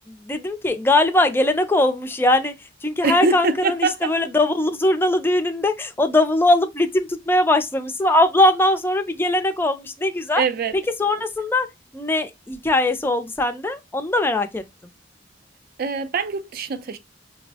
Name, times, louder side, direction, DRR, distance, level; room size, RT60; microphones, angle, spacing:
voice 1, 0.1-2.5 2.8-10.4 11.0-11.7 11.9-14.6, left 1 dB, 10° left, 0.4 m, -20 dB
voice 2, 3.0-4.1 10.4-10.8 15.8-17.0, right 4 dB, 55° right, 0.4 m, -23 dB
5.2 x 2.0 x 2.7 m
head